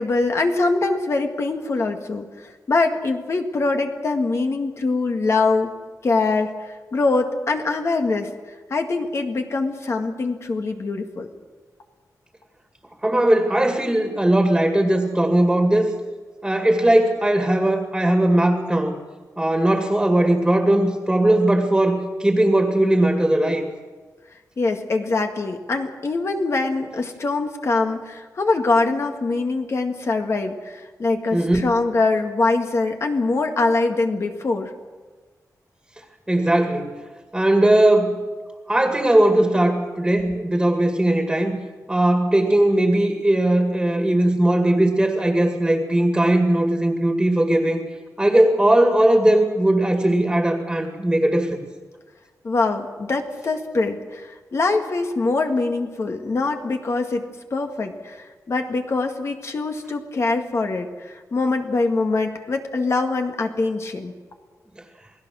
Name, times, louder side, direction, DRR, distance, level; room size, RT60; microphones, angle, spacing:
voice 1, 0.0-5.7 6.0-8.3 8.7-11.3 24.6-34.7 52.4-57.3 57.5-64.1, left 3 dB, 45° left, 4 dB, 1.9 m, -23 dB
voice 2, 13.0-15.9 16.4-18.9 19.4-23.6 31.3-31.6 36.3-37.0 37.3-38.1 38.7-41.6 41.9-47.8 48.2-51.6, right 1 dB, 10° right, 4 dB, 2.3 m, -19 dB
28.5 x 19.0 x 6.4 m, 1.4 s
wide cardioid pair, 155°, 6 cm